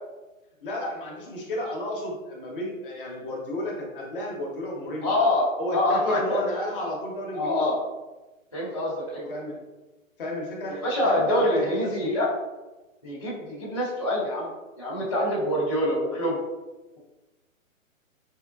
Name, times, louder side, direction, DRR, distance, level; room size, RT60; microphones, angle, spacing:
voice 1, 0.6-5.1 5.6-7.7 9.3-9.6 10.2-12.2, left 1 dB, 40° left, -1 dB, 0.8 m, -32 dB
voice 2, 5.0-6.4 7.3-7.8 8.5-9.3 10.7-12.3 13.0-14.5 14.8-16.4, left 1 dB, 25° left, -12 dB, 0.4 m, -25 dB
3.6 x 3.5 x 2.3 m, 1.1 s
hypercardioid pair, 170°, 41 cm